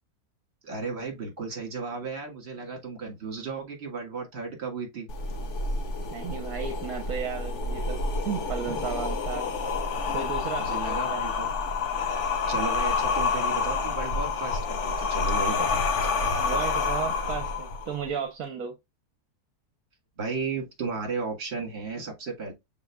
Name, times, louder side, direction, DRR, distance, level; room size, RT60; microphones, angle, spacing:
voice 1, 0.6-5.1 8.7-8.9 10.6-11.5 12.5-16.1 20.2-22.5, right 4 dB, 45° right, 1.8 m, -34 dB
sound 1, 5.1-18.1, left 4 dB, 55° left, 1.0 m, -28 dB
voice 2, 6.1-9.5 10.1-11.2 16.4-18.8, right 7 dB, 70° right, 1.2 m, -34 dB
6.1 x 3.9 x 2.2 m
omnidirectional pair, 1.6 m